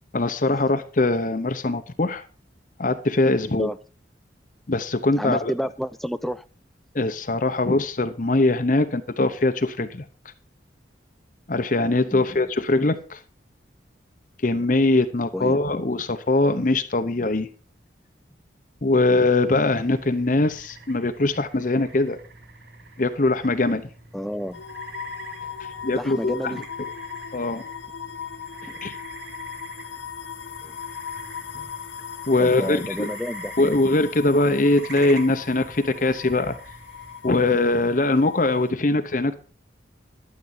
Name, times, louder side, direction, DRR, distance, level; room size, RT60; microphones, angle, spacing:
voice 1, 0.1-2.2 2.8-3.7 4.7-5.5 6.9-10.0 11.5-13.2 14.4-17.5 18.8-22.2 23.0-23.9 25.8-26.6 27.3-27.6 28.8-28.9 31.5-31.6 32.3-33.1 33.6-36.6 37.2-39.3, left 2 dB, 45° left, 0.8 m, -22 dB
voice 2, 5.2-6.4 12.1-12.3 15.3-15.6 24.1-24.6 26.0-26.6 28.6-28.8 30.6-30.8 32.4-33.7, equal, ahead, 0.5 m, -30 dB
sound 1, 19.6-37.2, right 3 dB, 60° right, 2.3 m, -45 dB
sound 2, 24.5-38.7, left 7 dB, 85° left, 0.9 m, -38 dB
12.0 x 7.7 x 5.5 m
head